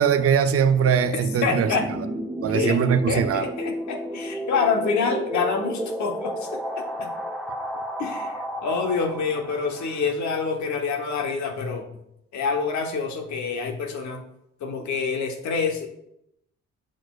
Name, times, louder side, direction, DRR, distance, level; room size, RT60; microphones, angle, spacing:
voice 1, 0.0-1.7 2.4-3.4, right 7 dB, 50° right, 10 dB, 0.5 m, -21 dB
sound 1, 0.6-10.1, equal, ahead, 0.7 m, -32 dB
voice 2, 1.4-1.9 2.5-2.8 3.1-7.1 8.0-12.0 12.3-14.2 14.6-15.9, left 5 dB, 70° left, 4 dB, 1.1 m, -27 dB
6.4 x 6.2 x 2.4 m, 0.79 s
cardioid pair, 90°, 30 cm